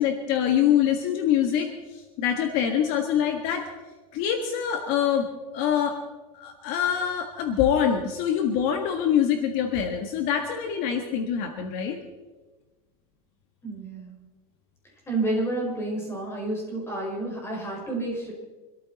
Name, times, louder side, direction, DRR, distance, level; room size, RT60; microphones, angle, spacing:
voice 1, 0.0-3.7 4.1-5.3 5.5-6.0 6.3-12.0, left 9 dB, 55° left, 5 dB, 1.6 m, -25 dB
voice 2, 13.6-14.1 15.1-18.3, right 2 dB, 15° left, -1 dB, 5.0 m, -30 dB
24.5 x 13.5 x 4.1 m, 1.3 s
supercardioid pair, 150°, 19 cm